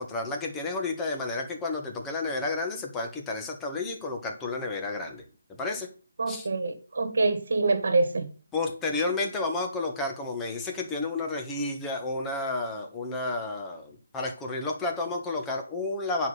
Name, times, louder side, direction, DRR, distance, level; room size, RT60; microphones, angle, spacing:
voice 1, 0.0-5.2 5.5-5.9 6.3-6.5 8.5-16.3, left 3 dB, 10° left, 1.3 m, -31 dB
voice 2, 6.2-8.3, right 3 dB, 55° right, 1.7 m, -25 dB
9.4 x 4.8 x 5.5 m
figure-of-eight pair, 150°, 0 cm